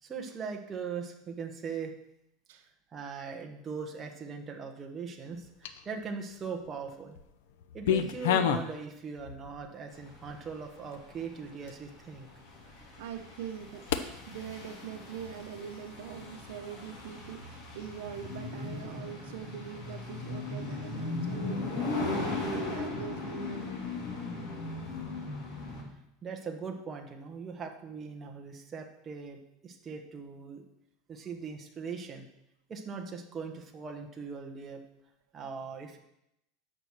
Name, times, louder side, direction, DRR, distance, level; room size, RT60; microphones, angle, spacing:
voice 1, 0.0-1.9 2.5-2.6 2.9-7.1 7.7-12.3 26.2-30.6 31.1-32.3 32.7-34.8 35.3-36.0, right 5 dB, 20° right, 2 dB, 1.1 m, -40 dB
sound 1, 5.4-6.0 6.6-7.2 7.5-8.7 9.2-9.6 10.3-10.4 10.9-11.0 11.7-11.8 13.9-14.0, left 8 dB, 90° left, 0.8 m, -29 dB
sound 2, 10.0-25.8, left 3 dB, 45° left, 3.4 m, -38 dB
voice 2, 13.0-23.7, right 8 dB, 80° right, 7 dB, 0.9 m, -43 dB
8.9 x 6.1 x 6.5 m, 0.81 s
supercardioid pair, 170°, 0 cm